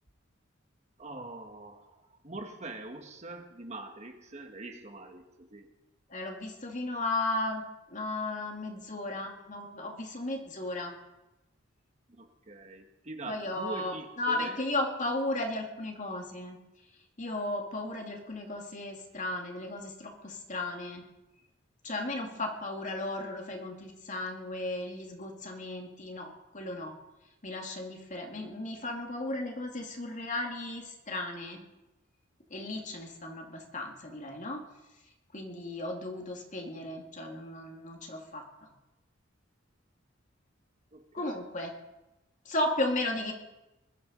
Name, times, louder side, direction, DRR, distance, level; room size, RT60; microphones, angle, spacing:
voice 1, 1.0-5.2 5.5-5.7 12.1-14.6 22.3-22.4 40.9-41.5, right 2 dB, 35° right, 5 dB, 1.6 m, -44 dB
voice 2, 6.1-10.9 13.3-16.6 17.2-21.0 21.8-26.9 27.4-31.6 32.5-34.6 35.3-38.7 41.1-41.7 42.4-43.3, left 2 dB, 40° left, 2 dB, 2.5 m, -35 dB
21.0 x 12.0 x 5.3 m, 0.99 s
head